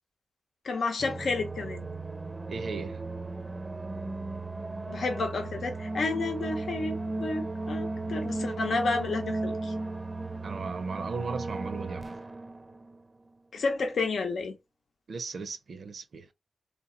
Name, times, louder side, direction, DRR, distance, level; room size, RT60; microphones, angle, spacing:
voice 1, 0.6-1.9 4.9-9.7 13.5-14.6, left 3 dB, 90° left, 0.8 m, -31 dB
sound 1, 1.0-13.0, right 2 dB, 30° right, 0.4 m, -36 dB
voice 2, 2.5-3.0 10.4-12.2 15.1-16.3, right 4 dB, 75° right, 0.5 m, -36 dB
3.2 x 2.8 x 3.9 m
cardioid pair, 65°, 0 cm